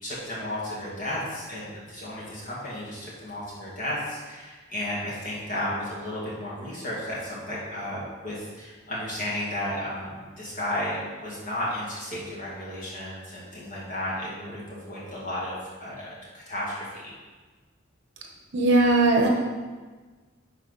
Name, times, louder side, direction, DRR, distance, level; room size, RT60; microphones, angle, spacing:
voice 1, 0.0-15.5 15.8-17.1, left 1 dB, 40° left, -6 dB, 2.3 m, -33 dB
voice 2, 18.5-19.3, right 2 dB, 60° right, 0 dB, 1.2 m, -19 dB
10.5 x 4.3 x 4.1 m, 1.4 s
head